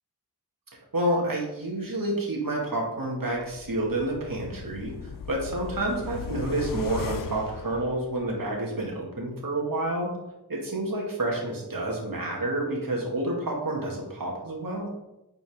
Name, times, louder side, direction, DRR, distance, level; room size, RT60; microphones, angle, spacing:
voice 1, 0.9-4.9 5.3-10.1 10.5-14.9, right 1 dB, 60° right, -1 dB, 2.2 m, -29 dB
sound 1, 3.4-8.6 8.9-9.0, left 6 dB, 60° left, 0.6 m, -38 dB
9.7 x 4.4 x 3.7 m, 0.93 s
cardioid pair, 50°, 38 cm